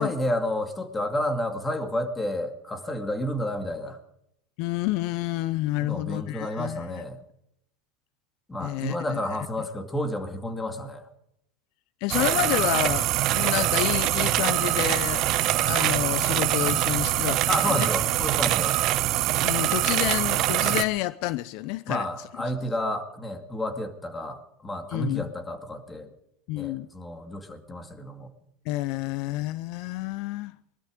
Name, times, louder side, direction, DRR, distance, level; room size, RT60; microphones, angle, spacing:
voice 1, 0.0-4.0 5.8-7.2 8.5-11.0 17.5-18.8 21.9-26.1 26.6-28.3, left 1 dB, 15° left, 2.3 m, -30 dB
voice 2, 4.6-7.0 8.6-9.2 12.0-15.2 15.6-17.9 19.4-22.1 24.9-25.3 26.5-26.9 28.7-30.6, left 17 dB, 65° left, 0.5 m, -29 dB
sound 1, 12.1-20.8, right 14 dB, 55° right, 1.0 m, -24 dB
20.5 x 13.0 x 5.1 m
supercardioid pair, 110°, 0 cm